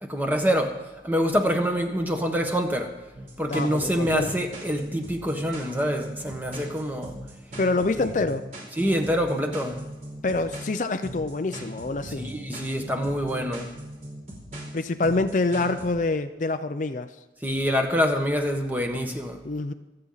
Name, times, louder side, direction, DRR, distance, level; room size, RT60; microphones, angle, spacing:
voice 1, 0.0-0.8 1.0-2.9 3.4-7.1 8.8-9.8 12.2-13.7 17.4-19.4, equal, 10° right, 4 dB, 1.4 m, -25 dB
sound 1, 3.1-15.9, right 1 dB, 45° right, 4.6 m, -39 dB
voice 2, 3.5-4.5 7.6-8.4 10.2-12.2 14.7-17.1 19.4-19.7, left 3 dB, 45° left, 9 dB, 0.5 m, -26 dB
25.5 x 8.8 x 4.0 m, 1.1 s
head